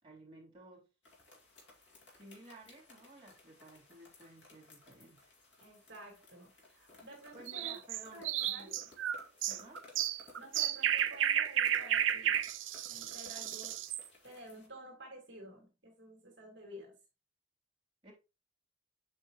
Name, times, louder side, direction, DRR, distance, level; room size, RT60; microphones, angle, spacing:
voice 1, 0.0-0.9 2.1-5.3 7.3-8.9 9.5-9.8 18.0-18.1, right 1 dB, 25° right, 3.3 m, -55 dB
sound 1, 1.0-14.7, left 2 dB, 60° left, 2.4 m, -59 dB
voice 2, 5.6-7.7 8.1-8.7 10.4-12.5 12.9-13.8 14.2-17.0, right 1 dB, 60° right, 2.4 m, -52 dB
sound 2, 7.5-14.0, right 10 dB, 75° right, 0.5 m, -33 dB
7.4 x 4.7 x 3.0 m
head